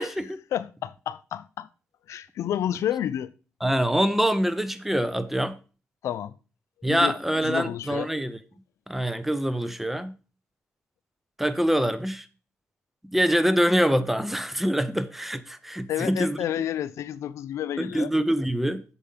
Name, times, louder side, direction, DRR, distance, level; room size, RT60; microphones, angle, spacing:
voice 1, 0.0-0.4 3.6-5.6 6.8-8.4 8.9-10.1 11.4-12.2 13.1-16.4 17.8-18.8, equal, 5° right, 0.7 m, -25 dB
voice 2, 0.5-1.7 2.1-3.3 6.0-6.3 6.9-7.2 7.4-8.1 15.9-18.1, left 10 dB, 80° left, 0.4 m, -30 dB
6.8 x 5.1 x 5.4 m
cardioid pair, 85°, 5 cm